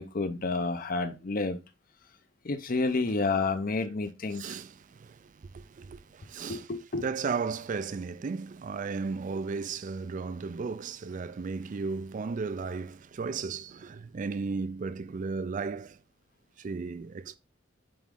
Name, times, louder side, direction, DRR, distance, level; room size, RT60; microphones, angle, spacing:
voice 1, 0.0-1.6 2.4-4.6 6.5-7.1, left 3 dB, 50° left, 0.7 m, -30 dB
voice 2, 4.3-6.7 7.0-16.0 16.6-17.4, right 4 dB, 45° right, 0.4 m, -35 dB
8.7 x 3.6 x 3.7 m
head